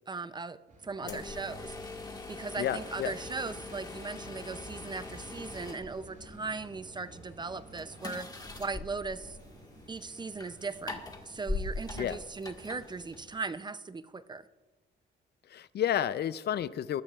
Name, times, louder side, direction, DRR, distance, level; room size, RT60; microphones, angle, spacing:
voice 1, 0.1-1.7 2.3-8.3 8.6-9.4 9.9-14.4, right 4 dB, 20° right, 14 dB, 0.5 m, -38 dB
sound 1, 0.7-10.4, right 2 dB, 40° right, 5.0 m, -53 dB
sound 2, 1.0-13.6, left 3 dB, 20° left, 1.6 m, -43 dB
voice 2, 2.6-3.1 12.0-12.2 15.5-17.0, left 10 dB, 55° left, 16 dB, 0.5 m, -31 dB
20.5 x 13.0 x 2.4 m, 1.2 s
cardioid pair, 90°, 20 cm